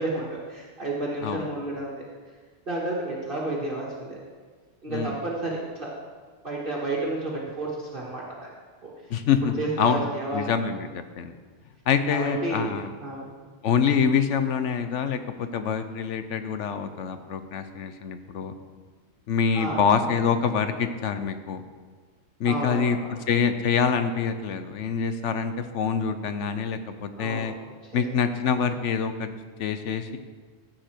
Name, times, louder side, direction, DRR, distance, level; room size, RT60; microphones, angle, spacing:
voice 1, 0.0-2.1 2.7-4.2 4.8-5.9 6.4-8.5 8.8-8.9 9.6-10.6 12.1-13.3 19.5-19.8 22.4-23.2 27.2-27.5 27.8-28.0, right 2 dB, 45° right, -4 dB, 1.7 m, -31 dB
voice 2, 9.1-11.3 11.9-12.9 13.6-18.5 19.3-21.6 22.4-23.0 23.3-27.5 27.9-30.2, left 6 dB, 70° left, 9 dB, 1.1 m, -26 dB
14.5 x 7.6 x 4.5 m, 1.5 s
omnidirectional pair, 1.3 m